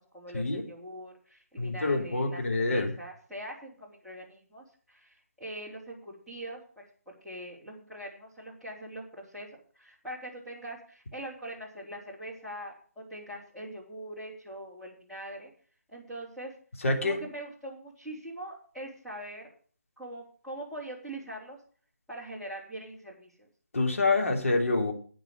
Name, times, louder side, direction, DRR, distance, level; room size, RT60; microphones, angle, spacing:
voice 1, 0.0-9.5 9.8-15.5 15.9-16.5 17.0-19.5 20.0-21.6 22.1-23.5, right 1 dB, ahead, -8 dB, 3.7 m, -42 dB
voice 2, 1.6-2.9 16.8-17.2 23.7-24.9, left 3 dB, 60° left, 2 dB, 3.1 m, -27 dB
10.0 x 9.4 x 6.4 m, 0.43 s
figure-of-eight pair, 150°, 9 cm